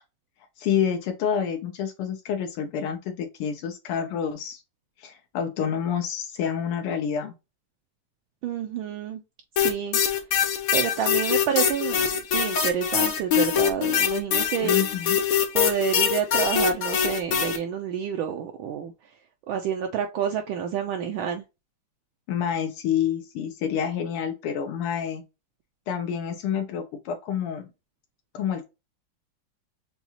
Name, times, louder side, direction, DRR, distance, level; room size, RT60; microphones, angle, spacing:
voice 1, 0.6-4.6 5.0-7.3 14.6-15.2 22.3-25.2 25.9-27.7 28.3-28.7, left 8 dB, 80° left, 1.6 m, -28 dB
voice 2, 8.4-9.2 9.6-10.0 10.7-14.8 15.5-19.1 19.5-21.4, right 8 dB, 75° right, 1.3 m, -29 dB
sound 1, 9.6-17.6, left 8 dB, 65° left, 0.9 m, -23 dB
7.0 x 2.3 x 2.8 m
omnidirectional pair, 2.4 m